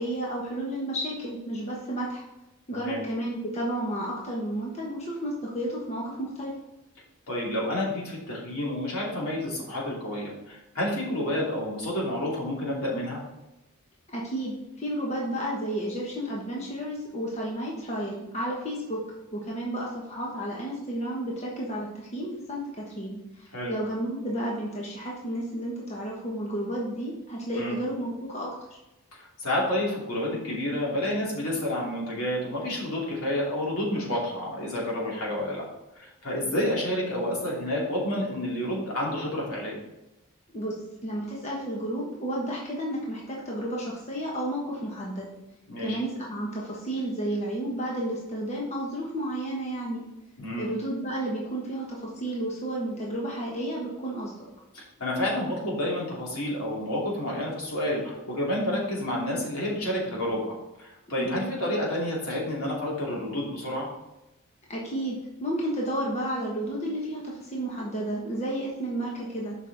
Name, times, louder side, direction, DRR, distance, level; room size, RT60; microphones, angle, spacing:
voice 1, 0.0-2.2 2.7-6.5 14.1-19.0 19.3-28.8 40.5-45.3 45.8-50.0 50.6-54.3 61.2-61.5 64.7-69.5, right 1 dB, 30° left, -3 dB, 1.2 m, -32 dB
voice 2, 2.7-3.0 7.3-13.2 23.5-23.8 27.6-27.8 29.2-35.6 35.9-39.8 45.7-46.0 50.4-50.7 54.7-63.9, left 1 dB, 75° left, -4 dB, 2.8 m, -29 dB
7.3 x 5.4 x 4.0 m, 0.96 s
head